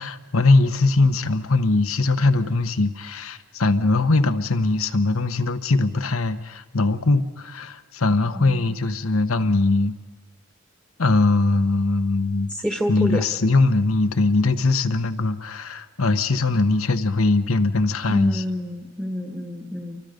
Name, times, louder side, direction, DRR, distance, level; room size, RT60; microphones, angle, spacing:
voice 1, 0.0-9.9 11.0-12.5 12.9-18.4, left 3 dB, 80° left, 9 dB, 1.1 m, -21 dB
voice 2, 12.5-13.2 18.1-20.0, equal, 5° right, 3 dB, 1.3 m, -28 dB
29.5 x 24.5 x 5.2 m, 1.3 s
head